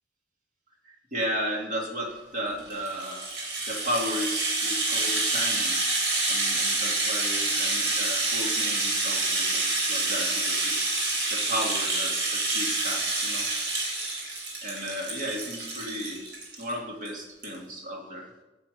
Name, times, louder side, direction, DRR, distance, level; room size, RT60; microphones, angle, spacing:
voice 1, 0.8-3.3 3.7-5.8 6.3-10.9 11.3-13.5 14.6-16.3 16.5-18.3, equal, 45° right, -1 dB, 2.6 m, -34 dB
Rattle (instrument), 2.6-16.7 17.0-17.1 17.4-17.6, right 2 dB, 90° right, 3.7 m, -28 dB
9.0 x 7.6 x 8.0 m, 1.1 s
head